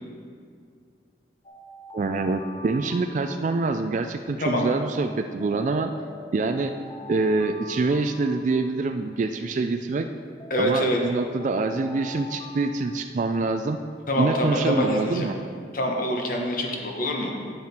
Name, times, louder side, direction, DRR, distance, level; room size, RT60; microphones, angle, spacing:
Alarm, 1.4-4.1 5.4-9.1 10.4-13.6, left 2 dB, 30° left, 0.8 m, -44 dB
voice 1, 1.9-5.9 6.3-6.7 7.1-10.1 10.6-13.8 14.2-15.3, right 3 dB, 45° right, 6 dB, 0.3 m, -25 dB
voice 2, 10.5-11.0 14.1-15.3 15.7-17.3, equal, 50° left, 1 dB, 1.2 m, -25 dB
9.5 x 7.2 x 4.4 m, 2.1 s
head